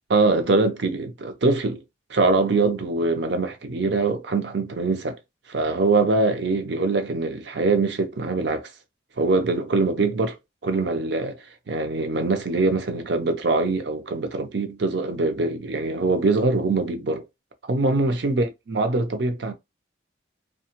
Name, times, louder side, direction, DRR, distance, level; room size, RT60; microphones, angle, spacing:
voice 1, 0.1-1.8 2.1-5.2 5.5-8.7 9.2-10.4 10.6-17.2 17.7-19.5, right 3 dB, 60° right, 0.6 m, -23 dB
2.8 x 2.3 x 2.9 m
head